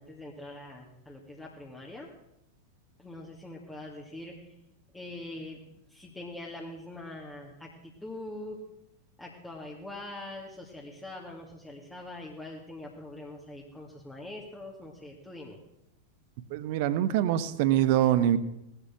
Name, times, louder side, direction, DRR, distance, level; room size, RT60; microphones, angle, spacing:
voice 1, 0.0-2.1 3.0-4.6 4.9-5.6 5.9-8.6 9.2-15.6, left 1 dB, 10° left, -3 dB, 2.4 m, -43 dB
voice 2, 16.5-18.4, right 11 dB, 50° right, 15 dB, 1.1 m, -24 dB
19.0 x 12.0 x 6.2 m, 0.83 s
figure-of-eight pair, 90°, 0 cm